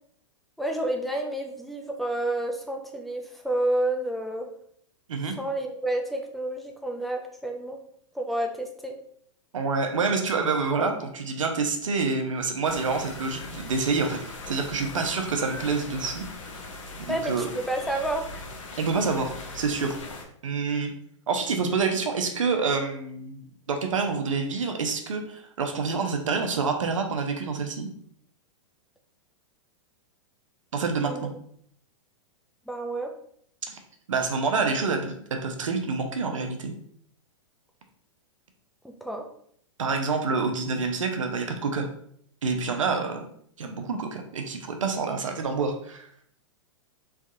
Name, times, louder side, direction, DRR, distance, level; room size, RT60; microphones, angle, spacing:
voice 1, 0.6-4.5 5.4-7.8 8.1-8.9 17.1-18.3 31.0-31.3 32.7-33.1 38.8-39.2, right 1 dB, ahead, 2 dB, 0.3 m, -29 dB
voice 2, 9.5-16.6 17.0-17.5 18.8-20.0 20.4-20.9 21.3-27.9 30.7-31.3 33.7-33.8 34.1-36.7 39.8-41.9 42.4-43.3 43.6-46.3, right 4 dB, 90° right, 5 dB, 0.6 m, -27 dB
sound 1, 12.6-20.2, left 2 dB, 75° left, 0.7 m, -40 dB
3.4 x 2.3 x 2.6 m, 0.65 s
hypercardioid pair, 125°, 16 cm